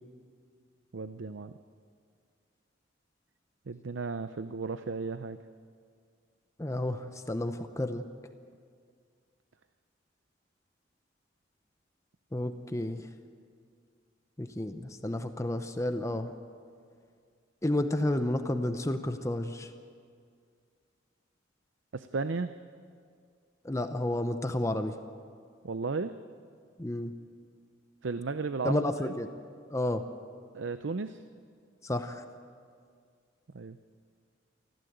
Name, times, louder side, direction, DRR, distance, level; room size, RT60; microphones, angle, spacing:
voice 1, 0.9-1.5 3.7-5.4 21.9-22.5 25.6-26.1 28.0-29.1 30.5-31.2 33.5-33.8, right 4 dB, 80° right, 11 dB, 0.6 m, -34 dB
voice 2, 6.6-8.1 12.3-13.0 14.4-16.3 17.6-19.7 23.6-24.9 26.8-27.1 28.6-29.3 29.7-30.0 31.8-32.2, left 1 dB, 15° left, 8 dB, 0.8 m, -31 dB
24.5 x 15.0 x 8.0 m, 2.2 s
head